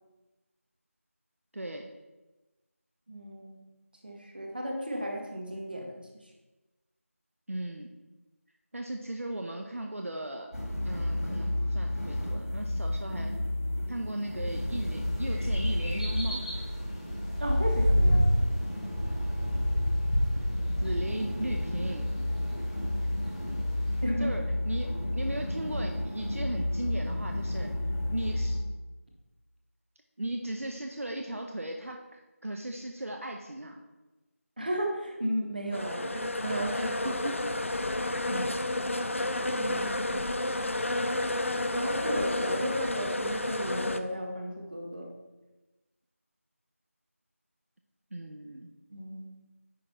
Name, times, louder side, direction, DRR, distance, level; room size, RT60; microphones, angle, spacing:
voice 1, 1.5-1.9 7.5-7.9 8.7-10.5 10.8-13.3 13.9-16.4 20.8-22.1 24.2-27.7 28.1-28.6 30.2-33.8 36.7-37.4 38.3-38.6 48.1-48.7, right 1 dB, 65° right, 3 dB, 0.8 m, -37 dB
voice 2, 3.1-3.6 4.0-6.0 17.4-18.3 24.0-24.3 34.6-37.1 39.5-40.3 41.6-45.1 48.9-49.3, equal, 40° right, 1 dB, 1.3 m, -34 dB
sound 1, 10.5-28.6, left 1 dB, 90° left, 2.4 m, -32 dB
sound 2, 14.4-24.0, equal, 25° left, 1.1 m, -30 dB
sound 3, 35.7-44.0, left 1 dB, 60° left, 0.5 m, -31 dB
10.0 x 3.8 x 4.4 m, 1.1 s
figure-of-eight pair, 175°, 8 cm